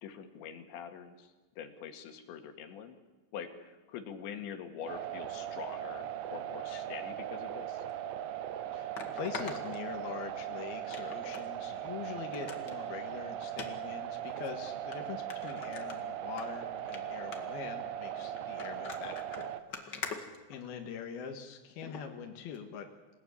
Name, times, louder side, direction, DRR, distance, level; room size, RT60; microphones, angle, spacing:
voice 1, 0.0-3.0 3.3-6.1 6.3-7.9, left 8 dB, 80° left, 6 dB, 4.3 m, -44 dB
sound 1, 4.9-19.6, right 10 dB, 85° right, 3.4 m, -39 dB
sound 2, 7.9-8.0 8.9-10.4 10.9-11.5 11.8-11.9 12.3-12.8 13.5-13.7 14.4-14.5 14.9-15.0 15.3-16.4 16.8-17.0 17.3-17.6 18.4-21.0 21.8-22.0 22.5-22.6, left 4 dB, 40° left, 1.6 m, -43 dB
voice 2, 8.7-19.5 19.8-20.1 20.5-22.9, left 7 dB, 65° left, 3 dB, 3.4 m, -43 dB
27.5 x 19.0 x 9.9 m, 1.3 s
omnidirectional pair, 5.1 m